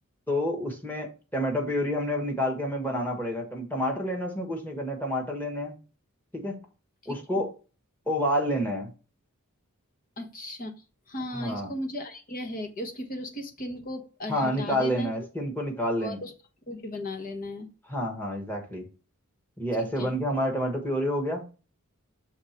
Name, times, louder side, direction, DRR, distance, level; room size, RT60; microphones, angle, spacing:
voice 1, 0.3-5.7 6.3-6.6 7.0-7.5 8.1-8.9 11.3-11.7 14.3-16.2 17.9-18.9 19.6-21.4, equal, 10° left, 1 dB, 1.4 m, -29 dB
voice 2, 10.2-10.7 11.1-15.1 16.0-16.3 16.7-17.7 19.8-20.1, left 1 dB, 40° left, 5 dB, 1.2 m, -36 dB
6.6 x 3.6 x 4.4 m, 0.34 s
head